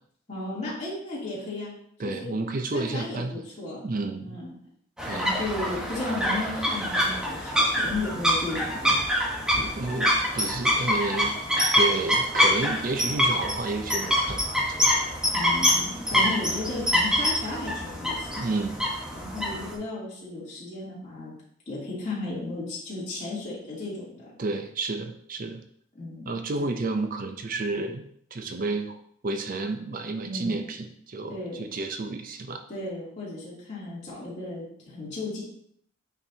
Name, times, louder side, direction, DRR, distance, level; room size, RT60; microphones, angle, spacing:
voice 1, 0.3-1.7 2.0-2.3 2.7-3.8 4.2-4.5 5.1-9.0 15.3-18.4 19.1-21.3 21.7-24.3 25.9-26.7 30.2-30.6 31.3-31.7 32.7-35.4, left 2 dB, 35° left, -7 dB, 2.8 m, -34 dB
voice 2, 2.0-3.4 3.8-4.4 5.1-5.3 9.5-11.3 11.7-14.9 16.1-16.4 18.4-18.9 24.4-25.6 26.3-28.0 28.3-29.0 29.2-32.6, right 3 dB, 45° right, 6 dB, 0.5 m, -31 dB
sound 1, 5.0-19.7, equal, 5° right, 1.0 m, -25 dB
8.8 x 4.5 x 2.7 m, 0.67 s
head